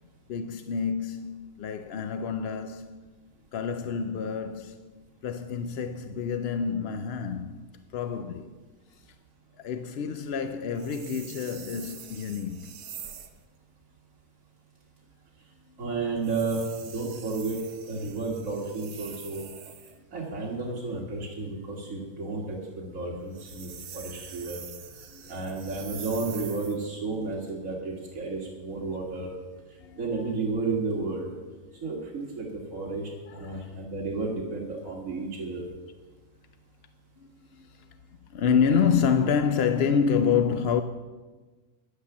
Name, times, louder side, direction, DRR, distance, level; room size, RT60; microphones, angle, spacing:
voice 1, 0.3-2.9 3.5-4.9 5.2-7.6 7.9-8.5 8.9-9.0 9.6-12.7 21.9-22.0 25.1-25.3 29.8-30.0 33.3-33.7 35.2-35.3 37.2-37.9 38.3-40.8, left 6 dB, 65° left, 0.6 m, -28 dB
sound 1, 10.7-13.4 16.2-20.0 23.2-26.9, right 8 dB, 90° right, 1.4 m, -45 dB
voice 2, 15.8-17.6 17.9-19.5 20.1-24.6 25.3-29.3 30.0-31.3 31.8-35.6, right 3 dB, 60° right, 2.1 m, -32 dB
11.0 x 9.8 x 7.0 m
omnidirectional pair, 1.6 m